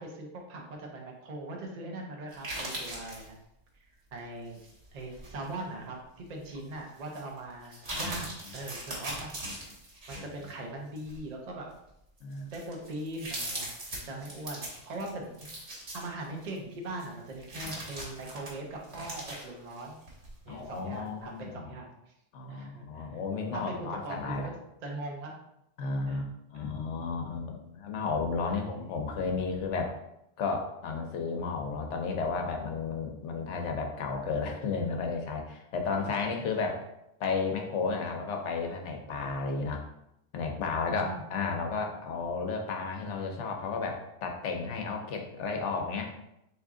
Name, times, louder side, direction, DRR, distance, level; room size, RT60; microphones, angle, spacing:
voice 1, 0.0-3.4 3.7-3.8 4.1-4.6 4.9-9.4 10.1-11.7 12.5-15.7 15.9-20.0 20.4-22.1 22.5-23.1 23.5-25.4 26.1-26.2 26.5-26.6 28.5-28.8 35.8-36.3 40.9-41.2, right 2 dB, 45° right, 0 dB, 0.6 m, -41 dB
sound 1, 2.3-3.3 4.5-5.5 6.0-6.1 7.1-7.2 7.6-10.5 11.0-11.2 11.9-12.0 12.3-16.6 17.0-20.3 20.7-20.8, right 1 dB, 60° right, 1.5 m, -40 dB
voice 2, 20.5-21.7 22.3-24.5 25.8-26.2 26.5-29.9 30.4-36.8 37.2-39.9 40.3-46.1, left 4 dB, 80° left, 3 dB, 1.0 m, -33 dB
3.5 x 3.0 x 3.6 m, 0.82 s
omnidirectional pair, 1.2 m